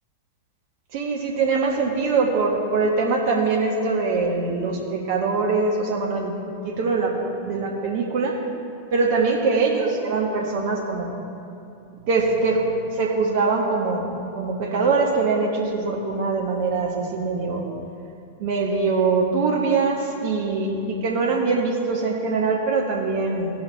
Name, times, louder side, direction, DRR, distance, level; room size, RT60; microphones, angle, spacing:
voice 1, 0.9-6.3 6.6-7.2 7.4-8.4 8.9-11.1 12.1-12.7 12.9-17.6 18.4-23.5, right 4 dB, 50° right, 0 dB, 1.1 m, -23 dB
15.5 x 6.2 x 3.2 m, 2.7 s
figure-of-eight pair, 90°, 0 cm